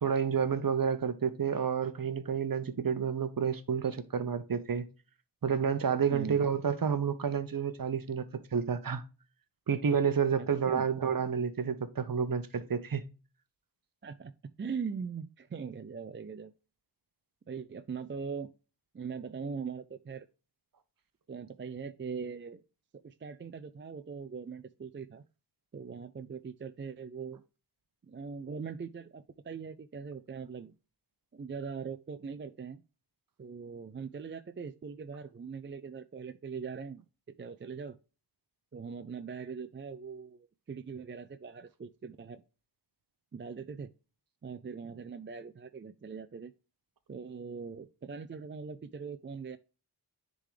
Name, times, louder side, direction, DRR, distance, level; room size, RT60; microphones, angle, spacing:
voice 1, 0.0-4.9 5.4-9.0 9.7-13.0, right 7 dB, 55° right, 0.9 m, -30 dB
voice 2, 6.1-6.4 10.4-10.8 14.0-14.3 14.6-16.5 17.5-18.5 18.9-20.3 21.3-22.6 23.0-25.2 25.7-27.4 28.0-30.7 31.3-32.8 33.4-37.1 37.4-38.0 38.7-42.4 43.3-43.9 44.4-46.5 47.1-49.6, right 5 dB, 30° right, 0.4 m, -41 dB
10.0 x 3.8 x 3.2 m
wide cardioid pair, 85°, 41 cm